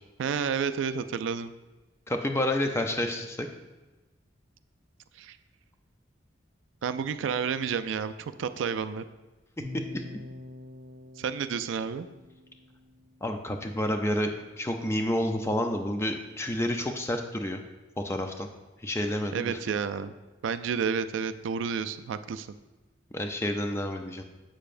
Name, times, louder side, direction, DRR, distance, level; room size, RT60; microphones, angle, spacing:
voice 1, 0.2-1.5 5.2-5.4 6.8-9.0 11.2-12.1 19.3-20.1 20.4-22.5, right 6 dB, 85° right, 11 dB, 0.3 m, -30 dB
voice 2, 2.1-3.5 9.9-10.0 13.2-14.3 14.6-17.6 18.0-18.5 18.8-19.6 23.1-24.2, left 1 dB, 15° left, 5 dB, 0.4 m, -29 dB
sound 1, 9.6-13.7, left 2 dB, 50° right, 0.8 m, -46 dB
7.6 x 6.8 x 2.5 m, 1.1 s
head